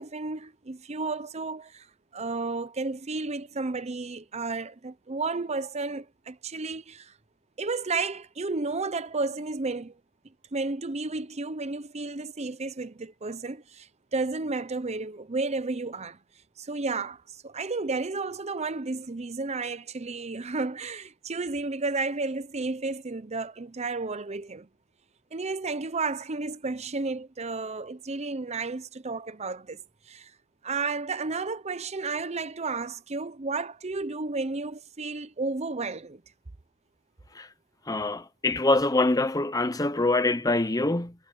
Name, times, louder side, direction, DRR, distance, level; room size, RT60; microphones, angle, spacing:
voice 1, 0.0-1.9 2.1-7.1 7.6-10.0 10.5-16.2 16.6-24.7 25.3-30.3 30.6-36.2, right 3 dB, 30° right, 0.7 m, -32 dB
voice 2, 37.9-41.1, left 2 dB, 15° left, 0.9 m, -24 dB
head